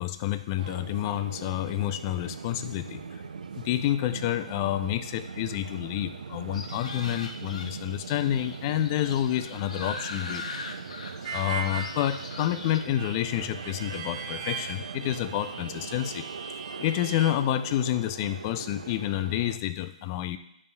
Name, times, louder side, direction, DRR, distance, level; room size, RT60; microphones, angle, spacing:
voice 1, 0.0-3.2 3.6-10.4 11.3-16.2 16.8-20.4, left 12 dB, 30° left, 11 dB, 0.4 m, -29 dB
sound 1, 0.6-19.6, right 5 dB, 85° right, 0.4 m, -41 dB
sound 2, 6.5-12.8, left 3 dB, 65° left, 1.0 m, -40 dB
Harmonica, 11.2-17.3, right 5 dB, 35° right, 0.8 m, -39 dB
11.0 x 5.4 x 2.2 m, 0.76 s
hypercardioid pair, 150°, 4 cm